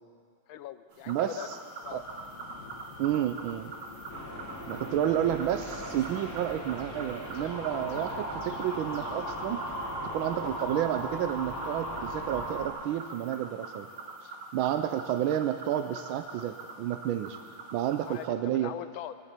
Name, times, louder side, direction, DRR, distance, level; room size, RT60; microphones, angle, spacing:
voice 1, 0.5-2.0 13.9-14.0 14.7-14.8 18.1-19.1, left 11 dB, 85° left, 12 dB, 1.5 m, -42 dB
sound 1, 0.9-18.3, right 3 dB, 65° right, 2.0 m, -44 dB
voice 2, 1.1-1.6 1.9-2.0 3.0-3.7 4.7-9.6 10.1-13.9 14.2-17.4 17.7-18.7, right 11 dB, 85° right, 8 dB, 1.4 m, -30 dB
sound 2, 1.8-11.3, left 4 dB, 45° left, 1.5 m, -48 dB
sound 3, 4.1-12.7, equal, 5° left, 3.1 m, -38 dB
22.0 x 7.4 x 8.2 m, 2.3 s
omnidirectional pair, 2.1 m